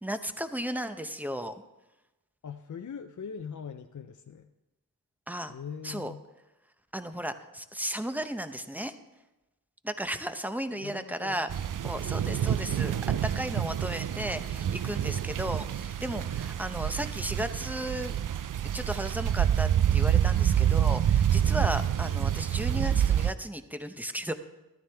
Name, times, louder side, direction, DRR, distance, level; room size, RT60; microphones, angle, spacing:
voice 1, 0.0-1.6 5.3-5.5 5.8-6.1 6.9-8.9 9.8-11.5 11.8-13.0 13.2-18.2 18.7-24.3, right 1 dB, 5° right, 9 dB, 0.7 m, -34 dB
voice 2, 2.4-4.5 5.5-6.2 10.8-11.4, left 6 dB, 55° left, 6 dB, 0.6 m, -41 dB
sound 1, 11.5-23.3, right 10 dB, 60° right, 0.5 m, -27 dB
13.0 x 13.0 x 3.4 m, 1.0 s
wide cardioid pair, 80°, 35 cm